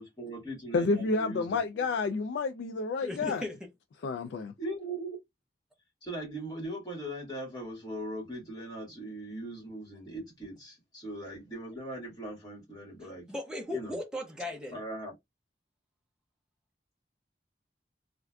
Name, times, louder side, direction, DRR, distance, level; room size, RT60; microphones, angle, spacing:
voice 1, 0.0-1.9 4.6-5.2 6.0-13.3 13.7-14.0 14.7-15.1, right 1 dB, 25° left, 1.7 m, -40 dB
voice 2, 0.7-3.4 4.0-4.5, left 4 dB, 80° left, 0.3 m, -30 dB
voice 3, 3.0-3.6 13.3-14.8, left 1 dB, 5° right, 0.6 m, -37 dB
3.4 x 2.5 x 2.3 m
head